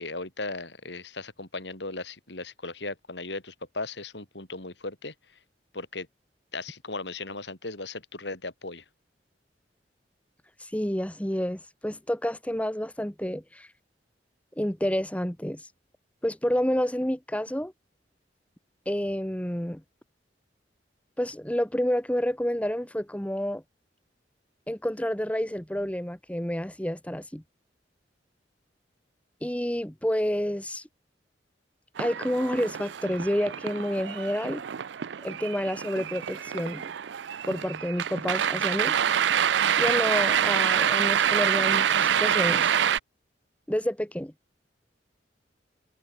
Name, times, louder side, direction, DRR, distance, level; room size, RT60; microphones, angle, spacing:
voice 1, 0.0-5.1 5.7-6.1 6.5-8.8, left 3 dB, 70° left, 4.3 m, -37 dB
voice 2, 10.6-13.7 14.6-15.6 16.2-17.7 18.9-19.8 21.2-23.6 24.7-27.4 29.4-30.8 32.0-34.6 35.2-36.9 37.5-39.0 39.8-42.7 43.7-44.3, equal, 10° left, 2.0 m, -29 dB
sound 1, 32.0-43.0, right 9 dB, 75° right, 0.5 m, -26 dB
head